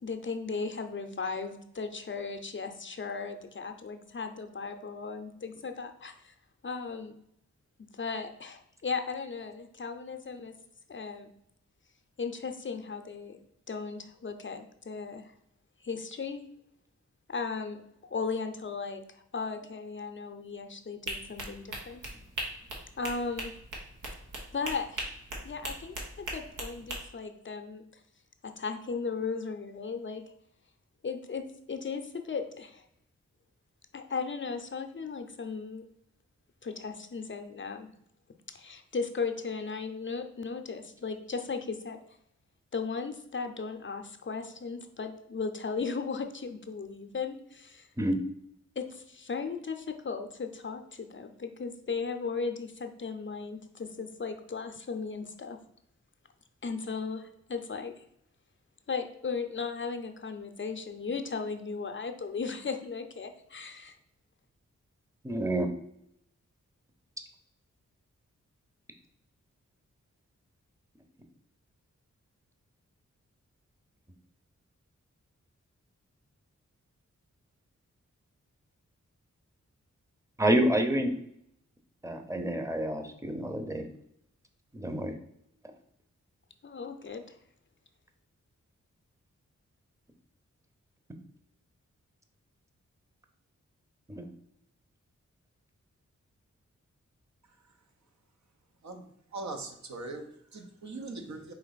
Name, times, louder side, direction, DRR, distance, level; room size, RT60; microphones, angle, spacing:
voice 1, 0.0-6.3 6.6-7.2 7.9-10.5 10.9-11.3 12.2-13.4 13.7-15.3 15.8-16.4 17.3-19.0 19.3-22.1 23.0-23.5 24.5-25.0 25.4-27.8 28.4-30.2 31.0-32.8 33.9-35.8 36.6-37.9 38.5-42.0 42.7-47.9 48.8-55.6 56.6-57.9 58.9-64.0 86.6-87.4, left 5 dB, 40° left, 6 dB, 0.6 m, -36 dB
sound 1, 21.1-27.0, right 1 dB, 90° right, 1.1 m, -38 dB
voice 2, 65.2-65.7 80.4-81.1 82.0-83.8 84.7-85.2 94.1-94.3, right 1 dB, 10° right, 6 dB, 0.7 m, -28 dB
voice 3, 99.3-101.5, right 3 dB, 65° right, 4 dB, 0.8 m, -40 dB
4.6 x 2.9 x 4.0 m, 0.76 s
cardioid pair, 50°, 30 cm